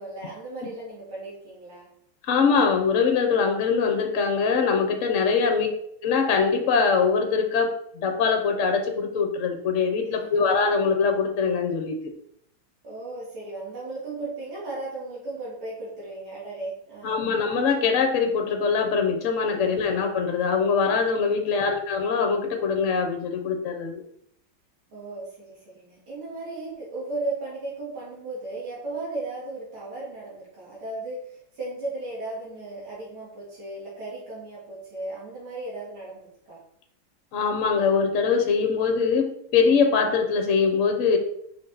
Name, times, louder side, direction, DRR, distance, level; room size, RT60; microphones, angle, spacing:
voice 1, 0.0-1.9 5.4-5.7 10.2-10.4 12.8-17.3 19.6-19.8 21.4-21.7 24.9-36.6 40.0-40.2, right 2 dB, 85° right, -7 dB, 3.0 m, -36 dB
voice 2, 2.3-5.7 6.0-12.0 17.0-24.0 37.3-41.2, left 5 dB, 55° left, 5 dB, 0.9 m, -23 dB
6.2 x 4.5 x 4.0 m, 0.70 s
omnidirectional pair, 2.3 m